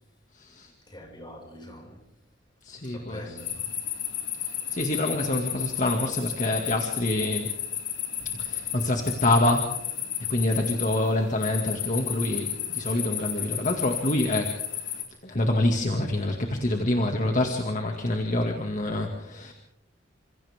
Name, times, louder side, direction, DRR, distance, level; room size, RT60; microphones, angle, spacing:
voice 1, 0.3-0.7 2.6-3.4 4.4-7.5 8.2-9.9 10.3-14.6 15.2-19.5, left 1 dB, 40° left, 2.2 m, -26 dB
voice 2, 0.9-2.0 2.8-3.6 4.6-4.8, left 1 dB, 25° left, 5.9 m, -44 dB
sound 1, 3.4-15.0, left 10 dB, 75° left, 4.6 m, -33 dB
29.5 x 27.0 x 3.6 m
head